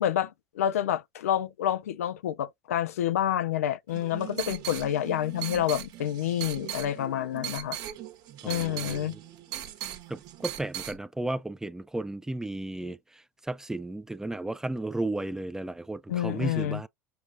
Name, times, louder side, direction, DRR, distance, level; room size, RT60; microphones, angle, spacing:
voice 1, 0.0-7.8 8.4-9.2 16.1-16.8, left 11 dB, 85° left, 0.4 m, -28 dB
sound 1, 3.9-11.0, right 12 dB, 55° right, 1.1 m, -39 dB
voice 2, 8.4-9.2 10.1-16.9, right 2 dB, 5° right, 0.4 m, -34 dB
6.6 x 2.4 x 2.6 m
hypercardioid pair, 80°, 8 cm